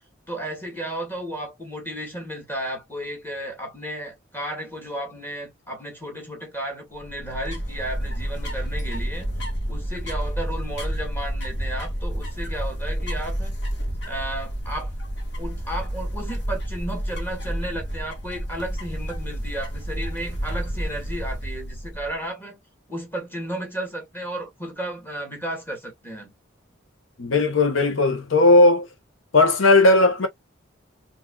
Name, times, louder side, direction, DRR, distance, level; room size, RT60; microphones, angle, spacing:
voice 1, 0.3-9.3 9.7-13.6 14.1-14.9 15.4-22.6 22.9-26.3, right 1 dB, 10° left, 1.7 m, -33 dB
sound 1, 6.9-22.2, equal, 60° left, 1.5 m, -30 dB
voice 2, 27.2-28.9 29.3-30.3, left 2 dB, 85° left, 0.9 m, -16 dB
4.7 x 2.6 x 2.3 m
head